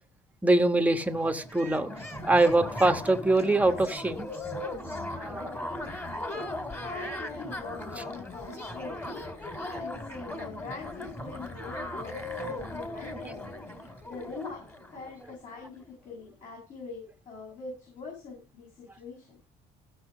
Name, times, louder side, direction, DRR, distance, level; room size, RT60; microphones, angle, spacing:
voice 1, 0.4-1.9 2.2-4.3 5.2-5.5, right 2 dB, 10° right, 7 dB, 1.3 m, -24 dB
sound 1, 1.0-15.6, left 1 dB, 15° left, 2.2 m, -38 dB
voice 2, 6.8-9.0 9.6-13.4 13.8-14.6 14.9-19.3, left 4 dB, 50° left, -2 dB, 6.4 m, -43 dB
14.5 x 6.1 x 4.9 m, 0.33 s
cardioid pair, 110°, 17 cm